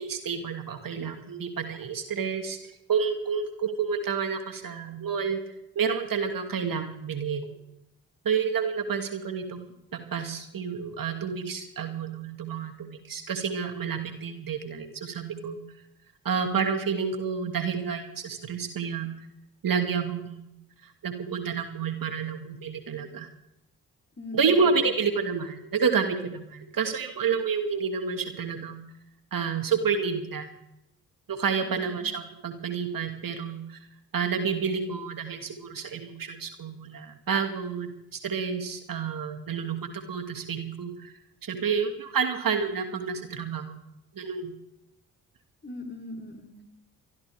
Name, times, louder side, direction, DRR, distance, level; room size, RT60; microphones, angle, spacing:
voice 1, 0.0-5.4 5.7-7.5 8.2-9.7 9.9-15.6 16.2-19.1 19.6-20.5 20.8-23.3 24.3-28.8 29.3-30.5 31.3-33.8 34.1-41.1 41.4-43.8 44.1-44.5, right 6 dB, 55° right, 5 dB, 2.6 m, -29 dB
voice 2, 24.2-25.0 31.6-32.1 45.6-46.6, left 2 dB, 25° left, 1 dB, 4.0 m, -41 dB
23.0 x 14.5 x 3.6 m, 0.83 s
hypercardioid pair, 40°, 41 cm